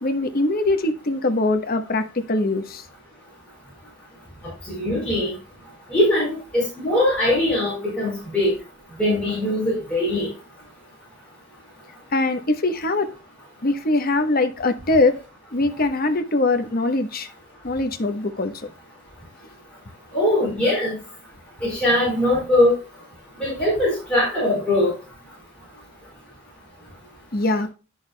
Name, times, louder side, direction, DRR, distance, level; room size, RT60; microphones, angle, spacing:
voice 1, 0.0-2.8 12.1-13.1 13.6-15.2 15.5-17.3 17.6-18.5 27.3-27.7, left 2 dB, 45° left, 1.1 m, -22 dB
voice 2, 4.7-5.3 5.9-8.5 9.0-10.3 20.1-20.9 21.6-22.7 23.4-24.9, left 1 dB, 5° left, 4.4 m, -21 dB
11.0 x 6.4 x 2.2 m
head